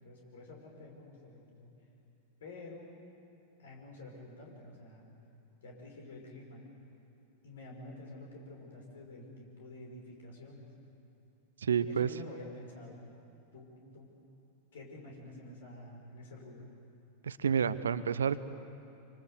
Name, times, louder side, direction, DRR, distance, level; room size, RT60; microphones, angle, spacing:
voice 1, 0.0-1.7 2.4-2.9 3.6-5.1 5.6-6.7 7.4-10.7 11.9-13.0 13.5-14.1 14.7-16.6, left 2 dB, 60° left, 0 dB, 6.0 m, -49 dB
voice 2, 11.6-12.1 17.2-18.5, right 7 dB, 70° right, 15 dB, 0.8 m, -29 dB
25.5 x 25.0 x 8.1 m, 2.8 s
figure-of-eight pair, 90°, 0 cm